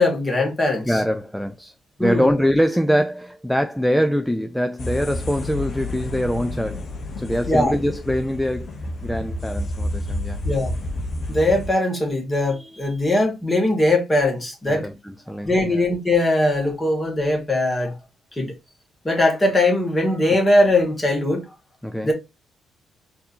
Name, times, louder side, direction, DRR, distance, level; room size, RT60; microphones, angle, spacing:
voice 1, 0.0-1.0 2.0-2.3 7.5-7.7 10.4-10.7 11.3-14.9 15.4-18.0 18.3-18.5 19.0-21.4 22.0-22.1, left 1 dB, 20° left, 1.8 m, -20 dB
voice 2, 0.8-1.7 2.0-6.9 7.2-8.7 9.0-10.4 14.7-15.8 21.8-22.1, equal, ahead, 0.4 m, -23 dB
sound 1, 4.8-11.7, left 1 dB, 50° left, 0.8 m, -30 dB
4.3 x 2.7 x 2.7 m
cardioid pair, 90°, 0 cm